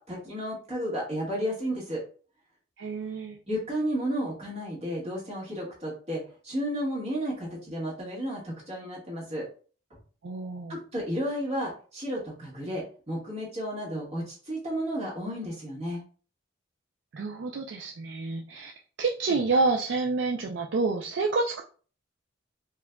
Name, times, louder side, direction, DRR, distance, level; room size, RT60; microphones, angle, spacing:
voice 1, 0.0-2.0 3.5-9.4 10.7-16.0, equal, 30° right, -4 dB, 1.5 m, -32 dB
voice 2, 2.8-3.4 10.2-10.8 17.1-18.7 19.0-21.6, right 3 dB, 65° right, 0 dB, 0.4 m, -28 dB
4.5 x 2.4 x 2.2 m, 0.40 s
head